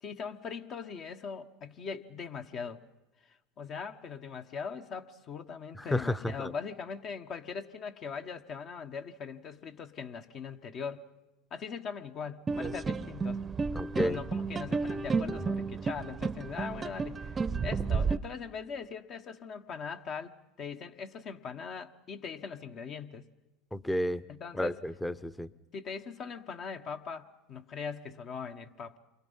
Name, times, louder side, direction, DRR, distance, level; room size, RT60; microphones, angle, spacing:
voice 1, 0.0-2.8 3.3-11.1 11.5-13.4 13.9-23.3 24.3-24.8 25.7-29.0, left 6 dB, 45° left, 1.3 m, -40 dB
voice 2, 5.7-6.5 13.7-14.2 23.7-24.2 24.5-25.5, equal, 5° left, 0.8 m, -31 dB
sound 1, 12.5-18.2, right 4 dB, 25° right, 0.8 m, -32 dB
28.5 x 23.5 x 5.6 m
hypercardioid pair, 100°, 0 cm